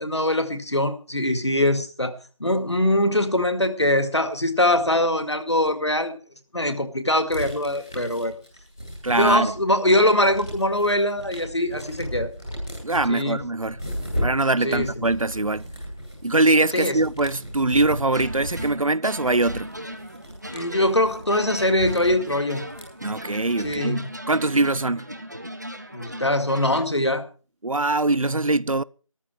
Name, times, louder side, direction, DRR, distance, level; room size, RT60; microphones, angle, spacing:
voice 1, 0.0-2.1 2.4-6.1 6.5-8.3 9.1-12.3 13.1-13.4 14.6-15.1 16.7-17.0 20.5-22.6 23.6-24.1 25.9-27.2, left 1 dB, 55° left, 2.1 m, -22 dB
sound 1, 7.3-9.7 10.1-24.0, equal, 5° left, 2.1 m, -35 dB
voice 2, 9.0-9.5 12.8-13.8 14.2-15.6 16.2-19.8 23.0-24.0 24.3-25.1 27.6-28.8, right 2 dB, 75° right, 0.7 m, -22 dB
sound 2, 18.1-26.8, equal, 30° right, 1.3 m, -38 dB
14.5 x 13.5 x 4.8 m
figure-of-eight pair, 175°, 18 cm